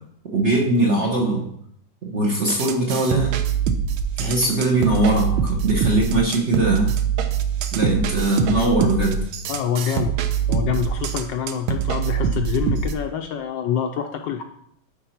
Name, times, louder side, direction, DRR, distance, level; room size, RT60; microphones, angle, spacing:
voice 1, 0.3-1.5 2.0-3.3 4.2-6.9 7.7-9.2, right 2 dB, 45° right, -1 dB, 1.0 m, -20 dB
sound 1, 2.5-13.0, right 7 dB, 80° right, 1.4 m, -24 dB
voice 2, 9.5-10.2 10.5-14.4, left 8 dB, 75° left, 5 dB, 1.1 m, -26 dB
10.0 x 4.5 x 4.4 m, 0.71 s
omnidirectional pair, 2.3 m